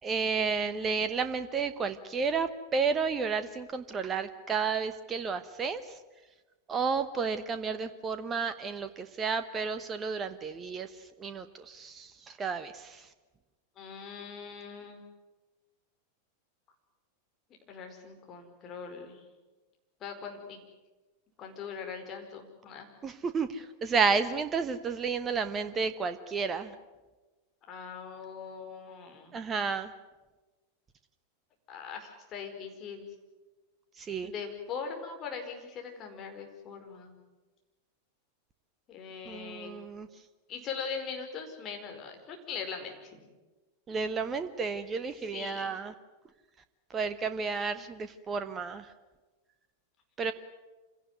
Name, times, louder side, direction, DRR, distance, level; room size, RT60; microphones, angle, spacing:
voice 1, 0.0-5.8 6.7-13.1 23.0-26.7 29.3-29.9 34.0-34.3 39.2-40.1 43.9-45.9 46.9-48.9 50.2-50.3, right 5 dB, 20° right, 11 dB, 1.1 m, -32 dB
voice 2, 13.8-15.0 17.7-19.2 20.0-20.6 21.4-22.9 27.7-29.4 31.7-33.1 34.2-37.2 38.9-39.7 40.5-43.3 45.3-45.7, left 6 dB, 30° left, 3 dB, 4.8 m, -41 dB
26.5 x 17.5 x 9.5 m, 1.2 s
figure-of-eight pair, 90°, 0 cm